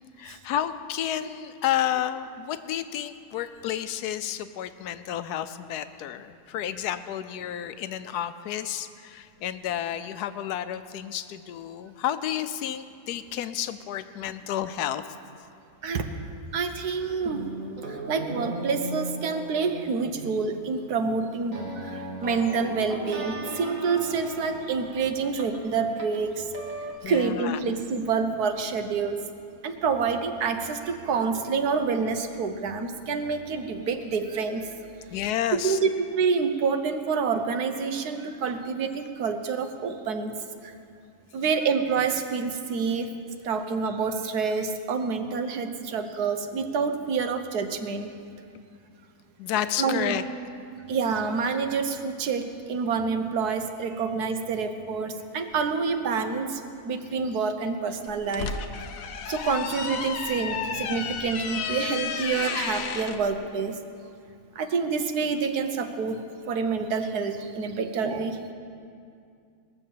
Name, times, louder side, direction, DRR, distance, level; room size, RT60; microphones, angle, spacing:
voice 1, 0.2-15.0 27.0-27.6 35.1-35.8 49.4-50.2, left 11 dB, 90° left, 11 dB, 1.2 m, -31 dB
voice 2, 16.5-17.4 17.9-26.5 27.0-29.2 29.6-34.7 35.6-40.3 40.6-40.7 41.3-43.2 43.4-48.1 49.8-50.2 50.9-58.5 59.3-63.8 64.5-66.2 66.5-68.5, right 5 dB, 80° right, 7 dB, 1.5 m, -27 dB
sound 1, 17.2-26.9, right 2 dB, 60° right, 2.1 m, -38 dB
sound 2, 58.1-63.2, left 6 dB, 65° left, 1.2 m, -32 dB
20.5 x 6.9 x 7.4 m, 2.4 s
omnidirectional pair, 1.6 m